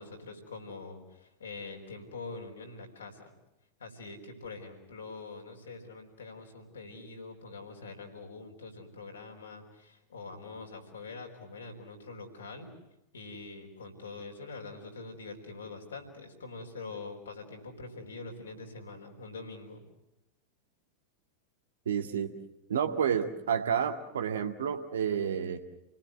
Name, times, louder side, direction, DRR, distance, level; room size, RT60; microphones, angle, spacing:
voice 1, 0.0-3.3 3.8-12.7 13.1-19.8, left 3 dB, 70° left, 3 dB, 4.7 m, -44 dB
voice 2, 21.9-22.3 22.7-25.6, right 7 dB, 65° right, 5 dB, 2.0 m, -30 dB
29.5 x 19.5 x 8.0 m, 0.93 s
figure-of-eight pair, 90°, 0 cm